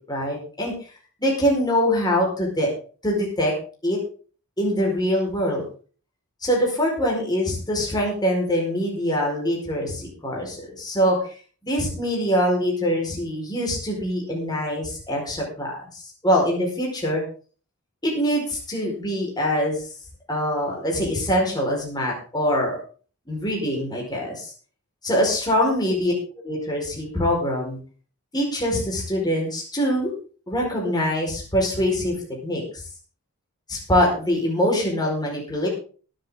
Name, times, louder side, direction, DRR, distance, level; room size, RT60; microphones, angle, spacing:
voice 1, 0.1-0.7 1.2-2.7 3.0-3.5 3.8-4.0 4.6-5.6 6.4-11.4 11.6-17.2 18.0-19.8 20.3-22.8 23.3-24.5 25.0-27.8 28.3-30.1 30.5-32.8 33.7-35.7, equal, 20° left, -2 dB, 4.8 m, -24 dB
22.5 x 7.9 x 3.8 m, 0.40 s
head